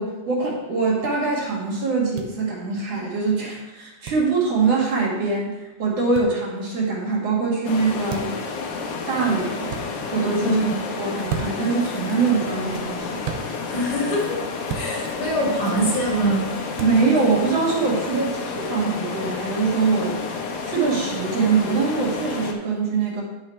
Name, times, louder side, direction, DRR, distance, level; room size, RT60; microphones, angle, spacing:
voice 1, 0.0-8.3 9.1-9.7 10.1-10.7 11.0-13.2 16.8-20.2 20.6-23.2, right 4 dB, 45° right, -3 dB, 2.9 m, -23 dB
sound 1, 2.2-2.3 4.0-4.2 6.1-6.3 8.1-8.4 9.7-9.9 11.3-11.7 13.2-13.5 14.7-14.9 16.8-17.0, right 7 dB, 80° right, 2.7 m, -31 dB
sound 2, 7.6-22.5, left 4 dB, 75° left, 2.8 m, -30 dB
voice 2, 13.7-14.4 14.7-16.4, right 1 dB, 55° left, -3 dB, 3.4 m, -23 dB
10.5 x 6.5 x 4.4 m, 1.2 s
omnidirectional pair, 4.3 m